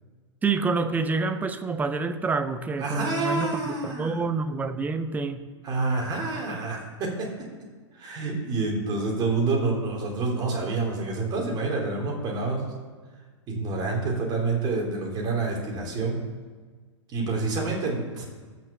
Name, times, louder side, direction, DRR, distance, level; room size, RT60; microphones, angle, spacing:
voice 1, 0.4-5.4, right 4 dB, 10° right, 10 dB, 0.7 m, -27 dB
voice 2, 2.8-4.2 5.6-7.3 7.9-12.7 13.5-16.3 17.1-18.2, right 3 dB, 25° right, 0 dB, 3.5 m, -28 dB
14.0 x 6.1 x 7.0 m, 1.4 s
figure-of-eight pair, 105°, 16 cm